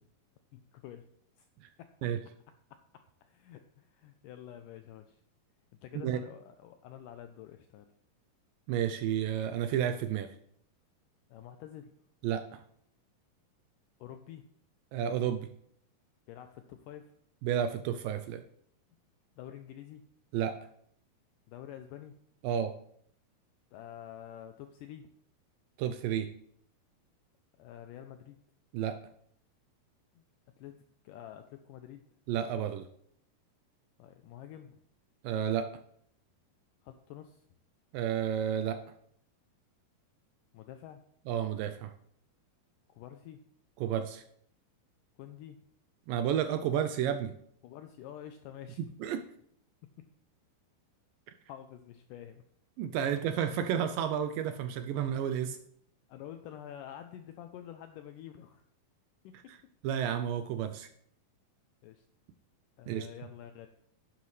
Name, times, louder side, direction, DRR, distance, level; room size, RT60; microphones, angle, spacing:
voice 1, 0.5-1.0 1.4-1.5 1.8-1.9 2.7-2.8 3.2-5.2 5.8-7.9 11.3-11.9 14.0-14.4 16.3-17.1 19.4-20.0 21.5-22.2 23.7-25.1 27.6-28.4 30.2-30.3 30.6-30.8 31.0-32.0 34.0-34.8 36.8-37.4 40.5-41.0 42.9-43.4 45.2-45.6 47.6-48.8 50.0-50.1 51.5-52.4 56.1-58.6 59.2-59.5 61.8-62.0 62.8-63.7, left 10 dB, 85° left, 7 dB, 1.9 m, -48 dB
voice 2, 8.7-10.3 12.2-12.6 14.9-15.5 17.4-18.4 20.3-20.5 22.4-22.7 25.8-26.3 28.7-29.0 32.3-32.9 35.2-35.7 37.9-38.8 41.3-41.9 43.8-44.2 46.1-47.3 49.0-49.2 52.8-55.6 59.5-59.6 59.8-60.9 62.9-63.1, right 9 dB, 80° right, 9 dB, 2.1 m, -31 dB
11.0 x 9.7 x 3.2 m, 0.67 s
omnidirectional pair, 4.4 m